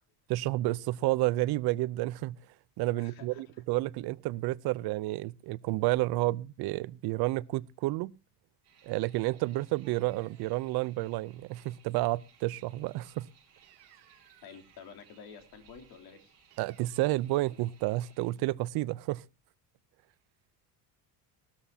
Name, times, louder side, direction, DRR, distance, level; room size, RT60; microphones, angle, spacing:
voice 1, 0.3-2.4 2.8-8.1 8.8-13.3 16.6-19.2, right 18 dB, 65° right, 0.6 m, -30 dB
voice 2, 3.0-3.6 14.4-16.3, left 6 dB, 65° left, 3.1 m, -50 dB
sound 1, 8.6-18.3, right 7 dB, 35° right, 5.5 m, -63 dB
sound 2, 9.8-10.7 13.6-14.9 16.5-17.1, right 13 dB, 85° right, 2.6 m, -61 dB
19.0 x 13.0 x 2.8 m
cardioid pair, 165°, 40 cm